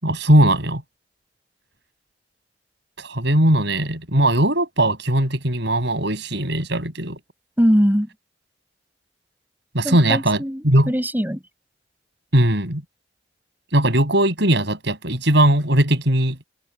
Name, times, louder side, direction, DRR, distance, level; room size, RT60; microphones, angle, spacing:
voice 1, 0.0-0.8 3.0-7.2 9.7-10.9 12.3-12.8 13.7-16.4, right 1 dB, 70° right, 6.7 m, -19 dB
voice 2, 7.6-8.1 9.8-11.4, equal, 10° right, 5.4 m, -21 dB
head